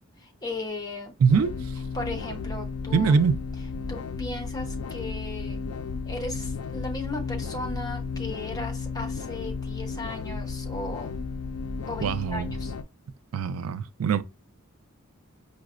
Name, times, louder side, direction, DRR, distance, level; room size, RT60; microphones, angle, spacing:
voice 1, 0.2-1.1 1.9-3.1 3.9-5.6 6.1-11.1 11.9-12.7, left 2 dB, 20° left, 0.7 m, -36 dB
sound 1, 1.3-12.8, left 4 dB, 80° left, 0.3 m, -33 dB
voice 2, 2.9-3.4 12.0-12.5 13.3-14.2, right 6 dB, 80° right, 0.3 m, -22 dB
4.7 x 2.1 x 2.4 m
head